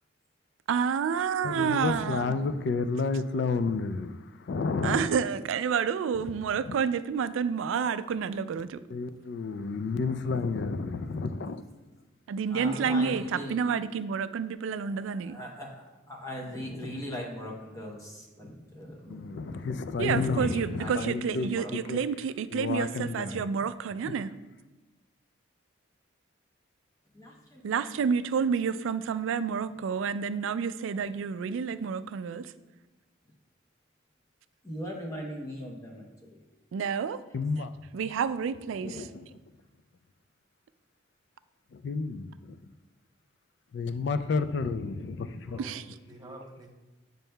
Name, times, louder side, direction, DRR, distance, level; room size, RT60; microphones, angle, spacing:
voice 1, 0.7-2.4 4.8-8.8 12.3-15.4 20.0-24.3 27.6-32.5 36.7-37.2 37.9-39.1 45.6-45.8 46.2-46.3, right 6 dB, 75° right, 0.3 m, -29 dB
voice 2, 1.4-5.2 6.7-6.8 8.9-11.6 19.1-22.0 22.5-23.5 37.3-37.7 38.8-39.3 41.7-42.6 43.7-45.6, left 4 dB, 55° left, 0.3 m, -31 dB
voice 3, 9.4-10.0 12.5-13.6 14.8-22.0 23.0-23.4 27.1-28.2 34.6-36.4 37.2-37.4 38.8-39.1, equal, 15° left, 0.7 m, -41 dB
voice 4, 12.5-13.3 45.4-46.7, right 1 dB, 20° right, 0.7 m, -44 dB
8.9 x 5.3 x 2.2 m
head